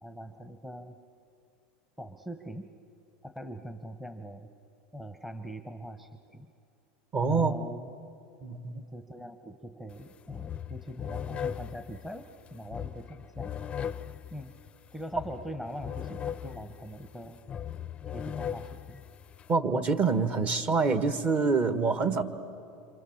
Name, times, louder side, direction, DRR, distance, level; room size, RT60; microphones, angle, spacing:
voice 1, 0.0-1.0 2.0-2.7 3.2-4.5 4.9-6.5 7.2-7.9 8.9-13.5 14.3-14.5 14.9-17.4 18.1-19.0, equal, 5° right, 7 dB, 1.1 m, -42 dB
voice 2, 7.1-7.6 8.4-8.8 19.5-22.2, right 4 dB, 35° right, 9 dB, 1.5 m, -26 dB
sound 1, 9.9-10.0 10.3-19.5, left 9 dB, 25° left, 0.6 m, -39 dB
27.0 x 26.5 x 7.3 m, 2.6 s
supercardioid pair, 125°, 5 cm